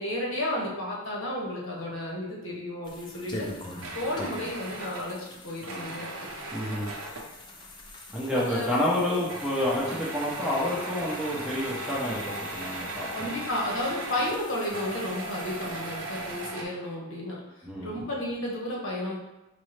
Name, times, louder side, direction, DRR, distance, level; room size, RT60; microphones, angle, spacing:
voice 1, 0.0-3.5 3.9-6.1 8.3-9.2 13.1-17.4 17.8-19.2, left 1 dB, 60° left, -3 dB, 0.9 m, -32 dB
sound 1, 2.8-16.5, left 1 dB, 20° left, 0.4 m, -45 dB
sound 2, 3.8-7.3 8.3-8.7 9.0-16.6, right 2 dB, 75° right, 0.6 m, -38 dB
voice 2, 6.5-6.9 8.1-13.3 17.6-18.0, left 1 dB, 5° right, -7 dB, 0.7 m, -29 dB
5.2 x 2.0 x 3.2 m, 1.0 s
head